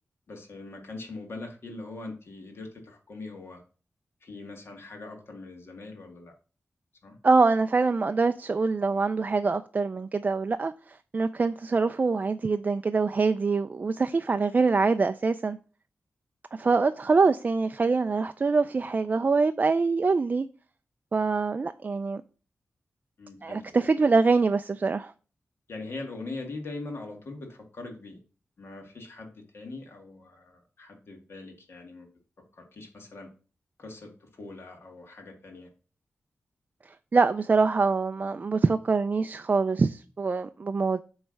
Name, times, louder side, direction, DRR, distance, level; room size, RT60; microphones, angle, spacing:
voice 1, 0.3-3.6 4.2-6.3 7.0-7.2 23.2-23.6 25.7-28.2 28.6-29.3 29.5-32.1 32.5-33.3 33.8-35.7, left 3 dB, 60° left, 1.9 m, -41 dB
voice 2, 7.2-10.7 11.1-15.6 16.5-20.5 21.1-22.2 23.4-25.1 37.1-41.0, right 4 dB, 35° right, 0.3 m, -24 dB
7.8 x 3.2 x 6.4 m
wide cardioid pair, 100°, 5 cm